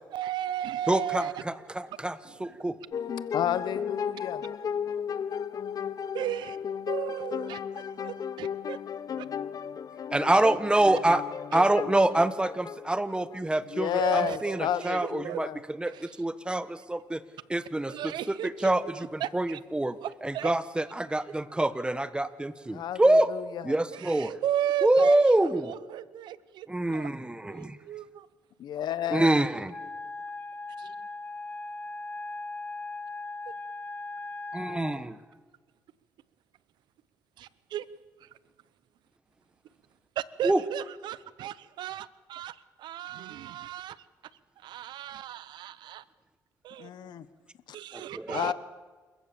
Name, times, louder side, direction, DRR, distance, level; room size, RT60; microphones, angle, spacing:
voice 1, 0.1-1.4 2.3-2.7 6.1-6.6 6.9-8.8 9.2-9.3 14.0-15.4 15.9-16.1 17.9-19.6 20.0-20.5 23.9-27.1 27.5-28.3 30.8-30.9 37.4-37.9 38.2-38.3 40.2-44.0 44.6-46.0 46.6-47.2 47.7-48.5, right 12 dB, 80° right, 18 dB, 0.8 m, -35 dB
voice 2, 0.9-2.8 10.1-11.2 11.5-15.5 15.8-17.2 17.5-17.9 18.3-20.0 20.2-23.3 23.6-24.4 24.8-25.7 26.7-27.8 29.1-29.7 34.5-35.2 40.4-40.6 47.9-48.5, right 1 dB, 10° right, 14 dB, 1.2 m, -26 dB
sound 1, 2.9-13.4, left 7 dB, 55° left, 0.9 m, -35 dB
voice 3, 3.3-4.4 13.6-15.6 22.7-23.7 28.6-29.3 46.8-47.3 47.7-47.8 48.3-48.5, left 10 dB, 70° left, 14 dB, 1.2 m, -31 dB
Wind instrument woodwind instrument, 29.7-35.1, left 3 dB, 20° left, 1.3 m, -38 dB
28.5 x 15.0 x 7.1 m, 1.4 s
cardioid pair, 80°, 8 cm